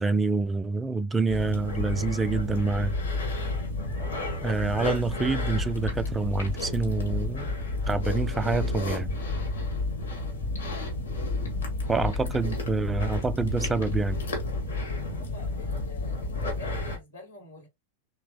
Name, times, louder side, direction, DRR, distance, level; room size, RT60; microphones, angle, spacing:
voice 1, 0.0-2.9 4.4-7.5 7.8-9.1 11.9-14.2, right 3 dB, 10° right, 0.3 m, -27 dB
sound 1, 1.3-17.0, left 2 dB, 70° left, 1.4 m, -31 dB
voice 2, 10.6-10.9 14.5-17.7, left 2 dB, 90° left, 1.9 m, -47 dB
3.2 x 2.9 x 2.9 m
figure-of-eight pair, 90°, 0 cm